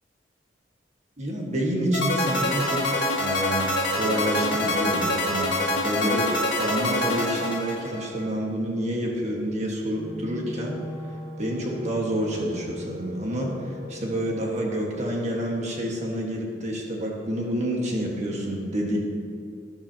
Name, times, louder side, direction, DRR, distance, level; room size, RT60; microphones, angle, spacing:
voice 1, 1.2-6.3 6.6-10.8 11.4-13.5 13.9-19.0, right 1 dB, 40° right, -2 dB, 1.6 m, -28 dB
sound 1, 1.9-8.2, left 1 dB, 70° left, 1.8 m, -25 dB
Wind instrument woodwind instrument, 9.9-14.4, left 1 dB, 20° right, 1.2 m, -40 dB
12.0 x 10.5 x 2.9 m, 2.4 s
head